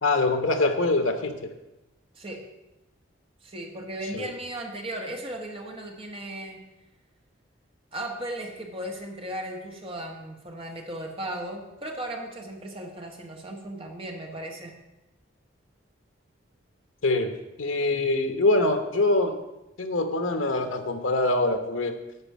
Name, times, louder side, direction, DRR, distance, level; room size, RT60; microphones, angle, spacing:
voice 1, 0.0-1.3 4.1-4.3 17.0-19.3 19.8-22.0, left 2 dB, 80° left, 7 dB, 1.1 m, -24 dB
voice 2, 3.4-6.6 7.9-14.7, right 1 dB, 30° right, 1 dB, 1.4 m, -36 dB
11.5 x 4.3 x 7.3 m, 0.99 s
head